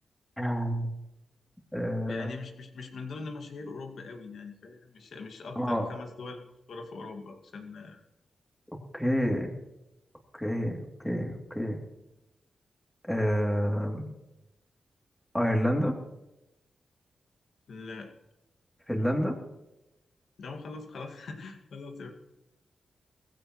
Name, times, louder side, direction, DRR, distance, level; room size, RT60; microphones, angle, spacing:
voice 1, 0.4-0.9 1.7-2.3 5.5-5.9 8.9-9.6 10.3-11.8 13.1-14.1 15.3-15.9 18.9-19.4, equal, 5° left, 1 dB, 3.1 m, -28 dB
voice 2, 2.1-8.0 17.7-18.1 20.4-22.1, left 4 dB, 75° left, 3 dB, 2.2 m, -42 dB
21.0 x 15.5 x 3.2 m, 0.93 s
cardioid pair, 80°, 0 cm